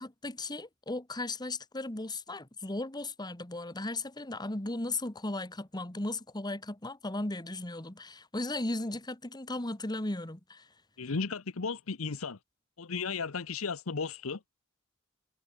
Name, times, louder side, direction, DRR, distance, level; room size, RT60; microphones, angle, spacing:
voice 1, 0.0-10.7, left 2 dB, 20° left, 1.7 m, -36 dB
voice 2, 11.0-12.4 12.8-14.4, left 4 dB, 85° left, 0.9 m, -34 dB
head